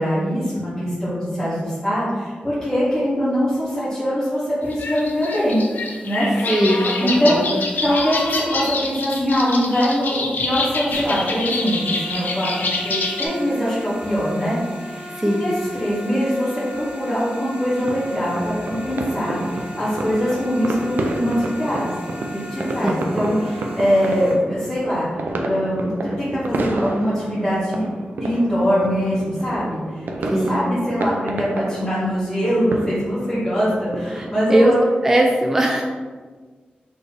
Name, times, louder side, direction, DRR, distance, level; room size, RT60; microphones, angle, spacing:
voice 1, 0.0-5.6 6.0-6.3 7.0-7.4 7.8-14.6 14.8-21.9 22.3-27.9 28.2-34.8, equal, 20° left, -13 dB, 1.5 m, -22 dB
sound 1, 4.7-13.3, left 3 dB, 65° left, 0.5 m, -26 dB
voice 2, 6.5-7.6 15.1-15.5 22.8-23.1 30.2-30.7 34.1-34.7 35.0-35.8, right 1 dB, 10° right, 0 dB, 0.3 m, -20 dB
sound 2, 10.9-24.3, equal, 55° right, 1.1 m, -37 dB
sound 3, 17.8-34.7, right 2 dB, 75° right, 0.5 m, -30 dB
4.1 x 3.3 x 3.3 m, 1.5 s
wide cardioid pair, 155°, 3 cm